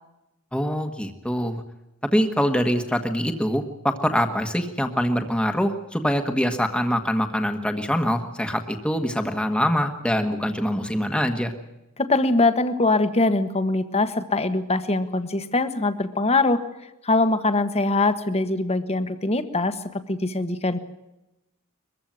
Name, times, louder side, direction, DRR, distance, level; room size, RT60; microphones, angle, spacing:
voice 1, 0.5-1.6 2.1-11.5, equal, 5° left, 5 dB, 1.5 m, -24 dB
voice 2, 12.0-16.6 17.0-20.8, left 2 dB, 30° left, 10 dB, 1.5 m, -22 dB
22.5 x 15.0 x 9.2 m, 0.95 s
head